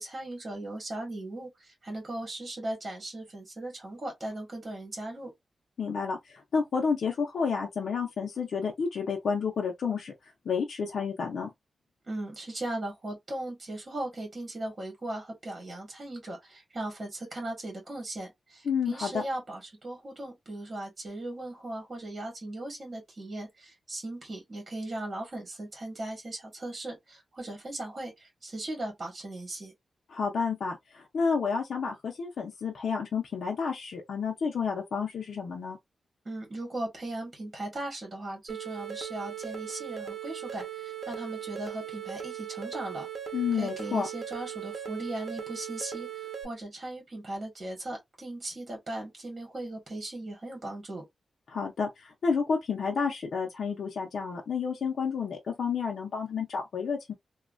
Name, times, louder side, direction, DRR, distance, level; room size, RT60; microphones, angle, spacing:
voice 1, 0.0-5.3 12.1-29.7 36.2-43.1 43.5-51.0, right 1 dB, 35° right, 1.5 m, -38 dB
voice 2, 5.8-11.5 18.7-19.2 30.1-35.8 43.3-44.1 51.5-57.1, left 5 dB, 80° left, 0.6 m, -30 dB
sound 1, 38.5-46.5, right 9 dB, 55° right, 0.9 m, -39 dB
3.1 x 2.3 x 2.5 m
wide cardioid pair, 100°, 0 cm